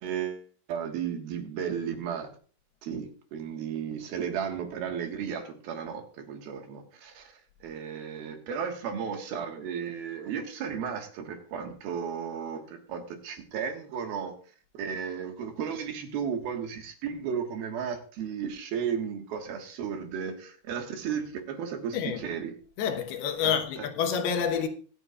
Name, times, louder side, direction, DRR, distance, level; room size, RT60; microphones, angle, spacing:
voice 1, 0.0-2.3 2.8-14.3 14.7-22.5 23.4-23.9, right 7 dB, 70° right, 3.2 m, -34 dB
voice 2, 21.9-22.3 22.8-24.7, left 7 dB, 75° left, 3.0 m, -28 dB
25.0 x 8.6 x 2.4 m
omnidirectional pair, 4.8 m